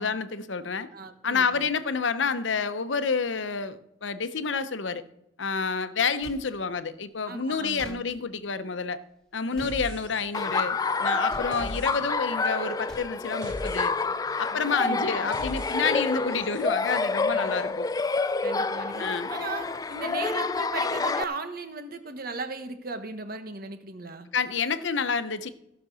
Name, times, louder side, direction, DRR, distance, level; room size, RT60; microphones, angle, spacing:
voice 1, 0.0-0.9 1.2-5.0 5.4-9.0 9.3-13.9 14.4-17.9 19.0-19.3 24.3-25.5, left 5 dB, 80° left, 12 dB, 0.8 m, -29 dB
voice 2, 0.9-1.7 7.3-8.0 9.5-9.8 14.5-15.3 17.3-17.8 18.4-19.0 19.3-24.3, right 3 dB, 50° right, 8 dB, 1.3 m, -37 dB
sound 1, 6.2-6.4 7.8-8.0 9.5-9.8 11.3-11.5 12.9-13.1, equal, 5° left, 2.3 m, -42 dB
sound 2, 9.6-10.5 10.8-16.8, left 1 dB, 70° right, 3.6 m, -42 dB
Laughter, 10.3-21.2, left 4 dB, 20° left, 0.3 m, -28 dB
15.5 x 6.0 x 6.2 m, 0.81 s
head